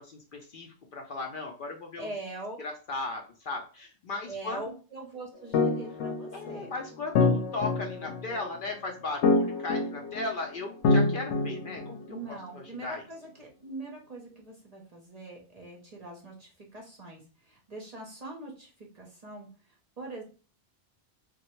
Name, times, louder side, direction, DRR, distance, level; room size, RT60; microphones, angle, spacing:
voice 1, 0.0-2.1 2.6-4.8 6.3-12.0 12.3-13.0, left 3 dB, 60° left, 2 dB, 0.6 m, -37 dB
voice 2, 2.0-2.6 4.3-6.7 12.1-19.5 20.0-20.2, right 2 dB, 40° right, -1 dB, 0.7 m, -42 dB
sound 1, 5.5-12.3, left 3 dB, 85° left, 0.9 m, -27 dB
3.2 x 2.2 x 3.0 m, 0.36 s
omnidirectional pair, 1.2 m